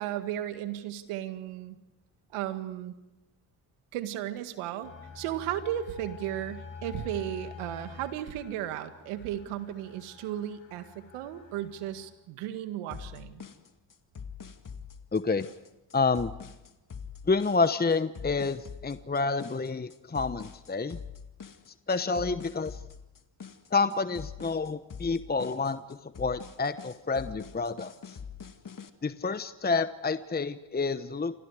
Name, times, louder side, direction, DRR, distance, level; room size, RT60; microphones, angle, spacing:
voice 1, 0.0-1.8 2.3-2.9 3.9-13.4, right 12 dB, 85° right, 9 dB, 2.0 m, -35 dB
sound 1, 4.8-12.1, left 6 dB, 65° left, 7.0 m, -47 dB
sound 2, 12.9-28.9, left 6 dB, 40° left, 2.2 m, -44 dB
voice 2, 15.1-15.5 15.9-16.3 17.3-21.0 21.9-22.8 23.7-28.2 29.0-31.4, left 4 dB, 20° left, 12 dB, 1.0 m, -29 dB
28.5 x 26.0 x 5.0 m, 0.96 s
hypercardioid pair, 55°, 49 cm